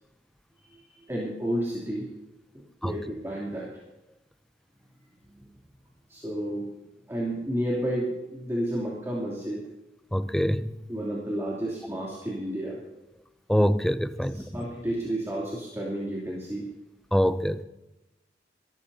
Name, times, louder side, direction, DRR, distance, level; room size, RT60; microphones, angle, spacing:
voice 1, 1.1-2.1 2.5-3.7 5.4-5.5 6.1-6.7 7.1-9.6 10.9-12.8 14.3-16.6, right 1 dB, 15° right, 3.0 m, -31 dB
voice 2, 10.1-10.7 13.5-14.4 17.1-17.6, equal, ahead, 0.5 m, -24 dB
26.0 x 13.5 x 2.8 m
head